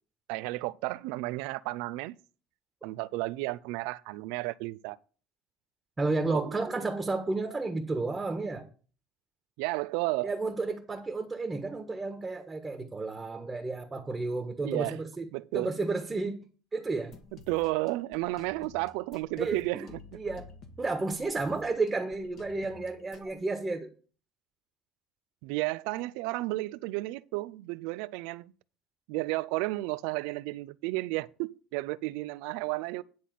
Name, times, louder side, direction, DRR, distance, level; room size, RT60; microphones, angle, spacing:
voice 1, 0.3-2.1 2.8-5.0 6.3-6.5 9.6-10.3 14.6-15.0 15.3-15.7 17.5-20.0 25.4-28.5 29.1-33.0, right 21 dB, 85° right, 0.4 m, -32 dB
voice 2, 6.0-8.7 10.2-15.3 15.5-16.4 16.7-17.1 19.4-19.9 20.1-20.5 20.8-23.9, right 3 dB, 20° right, 1.4 m, -32 dB
sound 1, 16.9-23.3, left 4 dB, 55° left, 1.9 m, -52 dB
10.0 x 4.1 x 7.7 m
cardioid pair, 110°, 0 cm